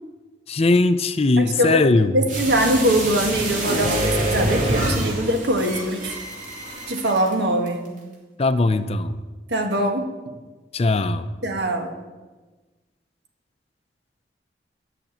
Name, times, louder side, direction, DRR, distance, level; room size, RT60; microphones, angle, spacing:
voice 1, 0.5-2.1 8.4-9.1 10.7-11.2, left 2 dB, 35° left, 11 dB, 0.5 m, -19 dB
voice 2, 1.4-6.1 6.9-7.8 9.5-10.1 11.4-12.0, right 1 dB, 70° right, 4 dB, 1.7 m, -22 dB
sound 1, 2.3-7.3 7.7-7.8, right 1 dB, 50° right, 3.1 m, -26 dB
13.0 x 6.0 x 8.7 m, 1.3 s
head